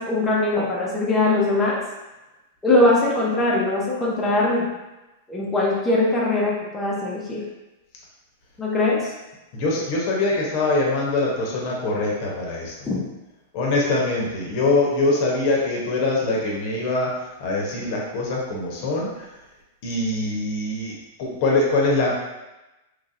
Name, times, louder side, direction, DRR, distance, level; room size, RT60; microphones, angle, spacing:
voice 1, 0.0-1.8 2.6-4.7 5.3-7.5 8.6-9.1 12.9-13.0, left 2 dB, 15° left, -5 dB, 0.7 m, -21 dB
voice 2, 9.5-12.9 13.5-19.3 19.8-22.1, left 2 dB, 55° left, -2 dB, 0.8 m, -23 dB
3.0 x 2.6 x 2.5 m, 1.0 s
hypercardioid pair, 120°, 0 cm